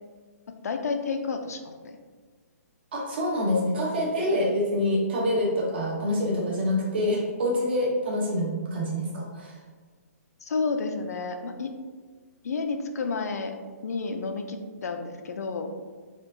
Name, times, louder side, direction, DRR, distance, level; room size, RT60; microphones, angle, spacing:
voice 1, 0.5-2.0 10.4-11.7 12.4-13.6 13.8-15.7, left 4 dB, 70° left, 5 dB, 0.4 m, -31 dB
voice 2, 2.9-9.6, left 1 dB, 40° right, -2 dB, 0.9 m, -26 dB
4.4 x 2.4 x 2.7 m, 1.5 s
hypercardioid pair, 170°, 9 cm